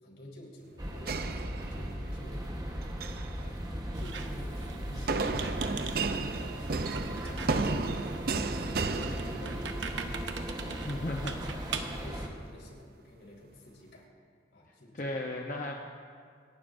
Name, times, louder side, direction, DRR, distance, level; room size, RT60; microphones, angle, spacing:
voice 1, 0.0-2.6 3.4-3.6 4.0-9.8 10.3-11.2 11.7-14.1 14.5-15.1, left 1 dB, 80° left, -3 dB, 3.8 m, -49 dB
sound 1, 0.8-12.3, equal, 20° right, 1.1 m, -38 dB
sound 2, 1.1-2.1 2.8-3.3 5.1-9.9, right 4 dB, 55° right, 0.5 m, -33 dB
Squeak, 3.9-12.1, right 5 dB, 80° right, 1.0 m, -42 dB
voice 2, 10.9-11.8 15.0-15.7, left 1 dB, 45° left, 0 dB, 0.8 m, -36 dB
26.5 x 11.5 x 2.6 m, 2.2 s
head